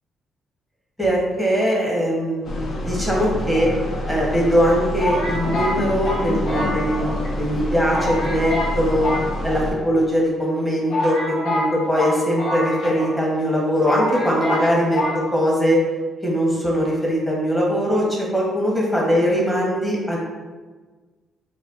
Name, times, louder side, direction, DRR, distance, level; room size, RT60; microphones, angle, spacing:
voice 1, 1.0-3.7 4.1-9.1 9.4-11.2 11.4-15.0 15.3-15.8 16.2-20.2, equal, 10° left, -4 dB, 1.1 m, -21 dB
sound 1, 2.4-9.7, left 1 dB, 60° left, 0.5 m, -27 dB
sound 2, 3.5-4.3 5.0-7.3 7.6-7.7 7.9-8.7 9.0-10.0 10.5-10.6 10.9-13.2 13.5-13.6 13.8-14.7 14.9-15.2, left 1 dB, 80° left, 1.0 m, -26 dB
4.1 x 2.3 x 2.5 m, 1.3 s
cardioid pair, 90°, 0 cm